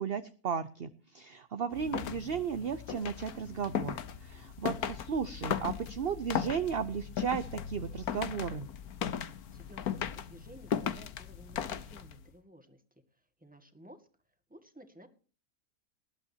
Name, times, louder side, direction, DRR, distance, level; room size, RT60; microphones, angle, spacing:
voice 1, 0.0-8.7, right 7 dB, 45° right, 10 dB, 0.9 m, -35 dB
sound 1, 1.7-12.2, left 8 dB, 85° left, 1.5 m, -37 dB
voice 2, 9.5-12.8 13.4-14.1 14.5-15.1, right 1 dB, 5° right, 6 dB, 2.0 m, -54 dB
20.0 x 11.5 x 2.9 m, 0.39 s
omnidirectional pair, 1.5 m